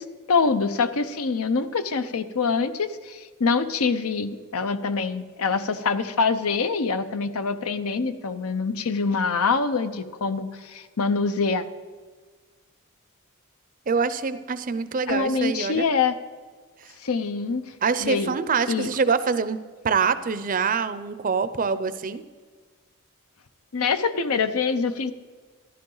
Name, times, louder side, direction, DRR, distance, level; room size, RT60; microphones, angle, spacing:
voice 1, 0.0-11.6 15.1-16.2 17.0-17.7 18.0-18.4 18.7-18.9 23.7-25.1, left 4 dB, 85° left, 11 dB, 0.7 m, -25 dB
voice 2, 13.9-15.9 16.8-16.9 17.8-22.2, right 5 dB, 40° right, 13 dB, 0.5 m, -25 dB
13.5 x 11.5 x 3.9 m, 1.4 s
head